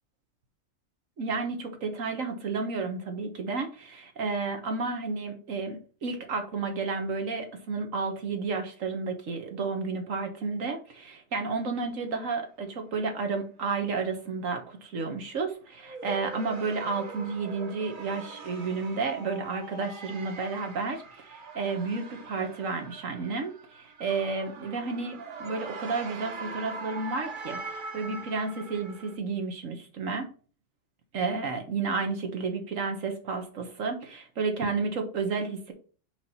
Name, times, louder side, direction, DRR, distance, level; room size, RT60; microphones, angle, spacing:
voice 1, 1.2-30.3 31.1-35.7, right 4 dB, 90° right, 5 dB, 1.7 m, -32 dB
sound 1, 15.8-29.2, right 4 dB, 45° right, 0.9 m, -42 dB
5.0 x 4.6 x 5.5 m, 0.40 s
omnidirectional pair, 1.3 m